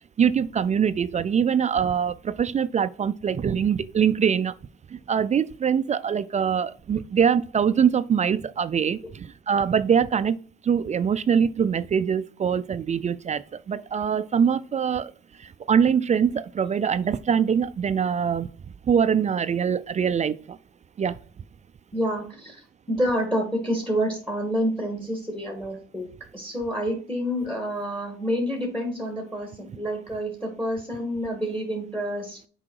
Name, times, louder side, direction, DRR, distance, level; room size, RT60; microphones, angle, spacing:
voice 1, 0.2-4.5 4.9-10.4 10.6-15.1 15.7-18.5 18.9-20.6 21.0-21.1, right 7 dB, 35° right, 0.4 m, -23 dB
voice 2, 21.9-22.6 22.9-26.1 26.3-32.4, equal, 5° left, 2.0 m, -28 dB
6.1 x 4.9 x 4.6 m
cardioid pair, 90°, 20 cm